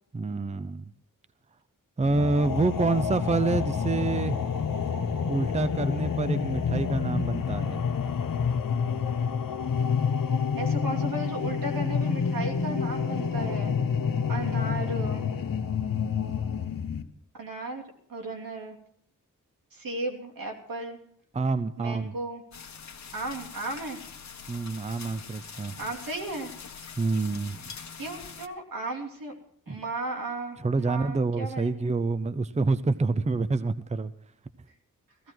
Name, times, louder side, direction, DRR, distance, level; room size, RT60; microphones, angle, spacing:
voice 1, 0.1-0.8 2.0-4.4 5.3-7.8 21.3-22.1 24.5-25.7 27.0-27.6 29.7-29.8 30.6-34.1, right 3 dB, 20° right, 13 dB, 0.6 m, -27 dB
sound 1, 2.0-17.0, left 6 dB, 90° left, 1.1 m, -28 dB
voice 2, 10.6-13.7 14.3-15.3 17.3-17.8 18.1-18.8 19.7-21.0 21.8-22.4 23.1-24.0 25.8-26.5 28.0-29.4 29.7-31.7, right 2 dB, 85° right, 2 dB, 3.1 m, -35 dB
sound 2, 22.5-28.5, left 6 dB, 55° left, 1.2 m, -44 dB
16.0 x 15.5 x 4.6 m, 0.62 s
wide cardioid pair, 105°, 33 cm